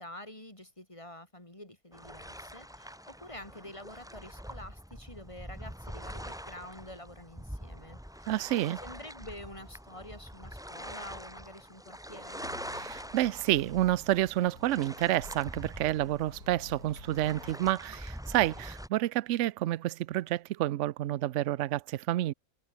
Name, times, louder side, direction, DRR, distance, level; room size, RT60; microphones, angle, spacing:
voice 1, 0.0-8.3 8.8-12.5, left 1 dB, 20° left, 4.2 m, -48 dB
sound 1, 1.9-18.9, equal, ahead, 3.0 m, -45 dB
voice 2, 8.3-8.8 12.7-22.3, right 14 dB, 65° right, 0.8 m, -29 dB
sound 2, 12.4-17.6, left 2 dB, 75° left, 6.5 m, -50 dB
omnidirectional pair, 1.6 m